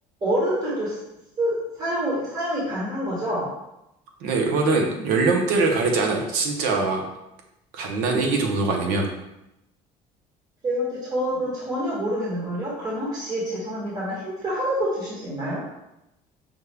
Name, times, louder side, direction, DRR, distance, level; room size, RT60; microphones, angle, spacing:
voice 1, 0.2-1.0 1.4-3.5 10.6-15.6, equal, 30° right, -7 dB, 1.1 m, -27 dB
voice 2, 4.2-7.0 7.7-9.1, right 3 dB, 90° right, 2 dB, 0.8 m, -22 dB
5.2 x 2.3 x 3.4 m, 0.87 s
cardioid pair, 160°, 15 cm